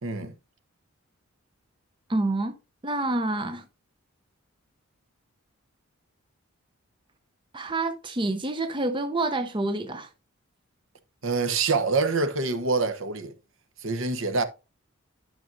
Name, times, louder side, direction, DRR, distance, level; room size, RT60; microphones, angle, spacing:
voice 1, 0.0-0.3 11.2-13.3 13.8-14.4, right 4 dB, 60° right, 1.0 m, -26 dB
voice 2, 2.1-2.5 2.8-3.6 7.5-10.1, right 2 dB, 20° right, 0.5 m, -27 dB
11.5 x 6.1 x 2.6 m
head